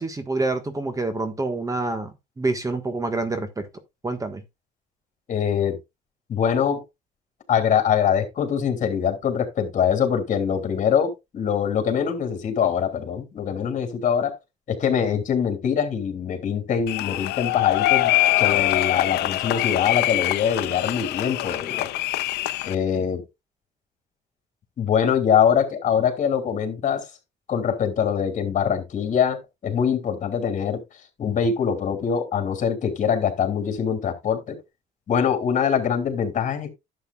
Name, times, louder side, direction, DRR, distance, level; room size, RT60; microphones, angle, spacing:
voice 1, 0.0-3.7 4.0-4.4, right 2 dB, 20° right, 1.5 m, -27 dB
voice 2, 5.3-5.8 6.3-6.8 7.5-14.3 14.7-21.9 22.6-23.2 24.8-27.1 27.5-30.8 31.2-34.6 35.1-36.7, left 7 dB, 50° left, 3.0 m, -23 dB
sound 1, 16.9-22.7, left 16 dB, 80° left, 0.6 m, -23 dB
11.5 x 8.0 x 2.4 m
cardioid pair, 110°, 17 cm